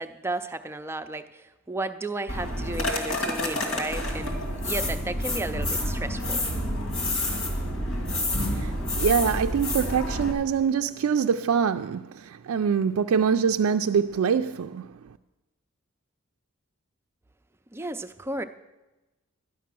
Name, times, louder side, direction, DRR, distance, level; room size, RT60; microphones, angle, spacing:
voice 1, 0.0-4.4 4.6-6.4 17.7-18.4, right 2 dB, 10° right, 0.4 m, -33 dB
sound 1, 2.3-10.3, left 1 dB, 75° left, 2.4 m, -28 dB
voice 2, 8.5-15.0, right 6 dB, 80° right, 0.3 m, -24 dB
12.0 x 9.2 x 6.0 m
head